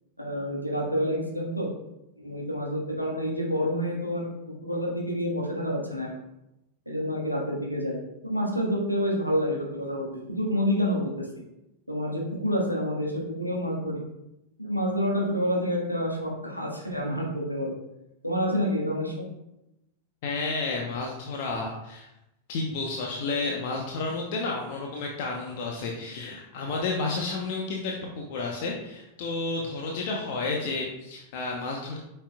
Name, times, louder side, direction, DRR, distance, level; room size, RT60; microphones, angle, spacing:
voice 1, 0.2-1.7 2.2-4.3 4.6-6.1 6.8-11.3 11.9-14.0 14.6-17.7 18.2-19.2, equal, 90° left, -2 dB, 1.6 m, -28 dB
voice 2, 20.2-22.1 22.5-32.0, left 3 dB, 50° left, 0 dB, 0.9 m, -31 dB
8.4 x 5.7 x 2.4 m, 0.90 s
figure-of-eight pair, 90°, 0 cm